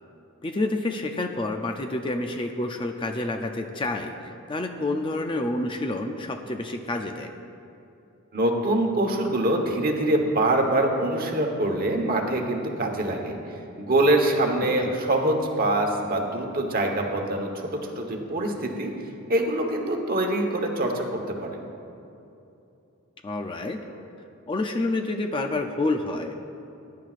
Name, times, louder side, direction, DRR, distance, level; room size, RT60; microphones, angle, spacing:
voice 1, 0.4-7.3 14.6-14.9 23.2-23.8 24.5-26.5, left 2 dB, 20° left, 5 dB, 0.5 m, -28 dB
voice 2, 8.3-13.4 13.8-18.9 19.3-21.6, right 1 dB, 40° right, 3 dB, 1.2 m, -24 dB
20.0 x 10.5 x 2.5 m, 2.7 s
head